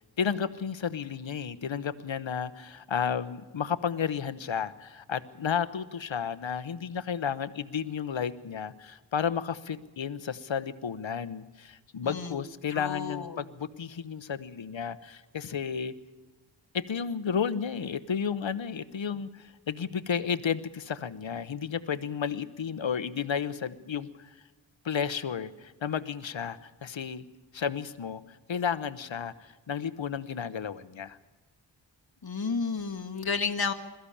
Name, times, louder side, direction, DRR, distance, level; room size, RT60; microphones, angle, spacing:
voice 1, 0.2-15.9 16.7-24.3 24.8-27.2 27.5-31.2, left 7 dB, 85° left, 15 dB, 1.0 m, -32 dB
voice 2, 12.0-12.4 12.7-13.4 32.2-33.7, left 5 dB, 55° left, 4 dB, 1.6 m, -32 dB
22.0 x 14.0 x 8.6 m, 1.2 s
wide cardioid pair, 65°, 45 cm